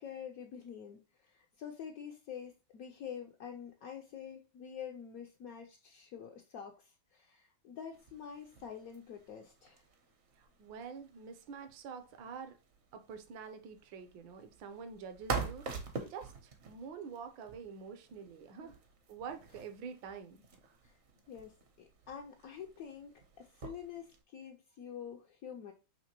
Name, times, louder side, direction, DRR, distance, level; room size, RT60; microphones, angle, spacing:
voice 1, 0.0-9.8 18.6-18.7 20.8-21.0 21.3-25.7, left 8 dB, 80° left, 0.8 m, -47 dB
sound 1, 7.9-24.2, right 5 dB, 55° right, 0.7 m, -46 dB
voice 2, 10.4-12.6 12.9-15.7 16.1-18.8 19.1-20.4 20.7-20.8, right 6 dB, 80° right, 1.4 m, -47 dB
6.1 x 2.9 x 2.9 m
omnidirectional pair, 2.1 m